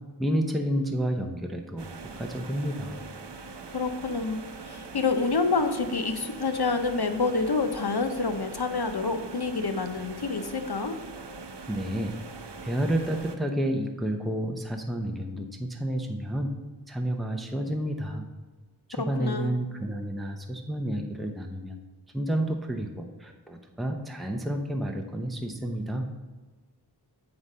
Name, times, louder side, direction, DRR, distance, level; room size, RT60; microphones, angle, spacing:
voice 1, 0.2-1.9 2.2-3.0 11.7-12.1 12.6-16.5 16.9-18.2 18.9-21.8 22.1-26.1, right 1 dB, ahead, 2 dB, 0.8 m, -30 dB
sound 1, 1.8-13.4, right 4 dB, 80° right, 0.7 m, -42 dB
voice 2, 3.7-11.0 19.0-19.5, left 4 dB, 65° left, 7 dB, 0.8 m, -28 dB
7.8 x 4.8 x 5.5 m, 1.3 s
wide cardioid pair, 40°, 41 cm